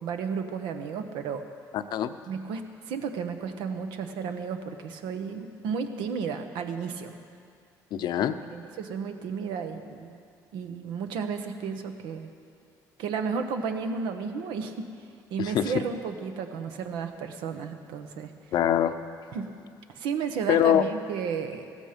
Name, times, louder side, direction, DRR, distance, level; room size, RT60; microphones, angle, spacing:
voice 1, 0.0-1.4 2.3-2.6 2.9-7.1 8.5-10.2 10.5-12.3 13.0-14.9 15.3-18.3 19.3-19.5 19.9-21.7, right 6 dB, 85° right, 7 dB, 1.1 m, -33 dB
voice 2, 1.7-2.2 7.9-8.3 15.4-15.7 18.5-19.0 20.5-20.9, left 10 dB, 65° left, 10 dB, 0.7 m, -23 dB
16.0 x 14.0 x 5.2 m, 2.4 s
cardioid pair, 90°, 8 cm